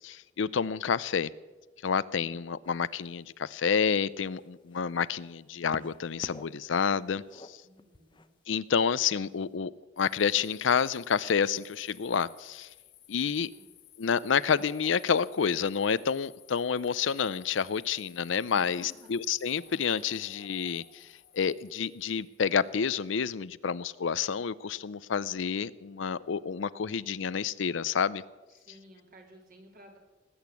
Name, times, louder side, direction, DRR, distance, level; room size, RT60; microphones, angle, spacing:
voice 1, 0.0-1.3 1.8-7.6 8.5-9.7 10.0-12.7 13.1-13.5 14.0-21.1 21.3-28.2, left 6 dB, 75° left, 0.5 m, -29 dB
sound 1, 2.6-3.0 3.7-5.1 5.7-6.6 6.9-8.3 9.2-9.3, left 2 dB, 25° left, 0.7 m, -47 dB
voice 2, 7.6-8.3 13.5-13.8 18.5-19.1 28.5-30.0, right 1 dB, 50° right, 3.2 m, -54 dB
sound 2, 10.0-22.8, left 8 dB, 60° left, 1.5 m, -56 dB
19.0 x 8.8 x 8.3 m
head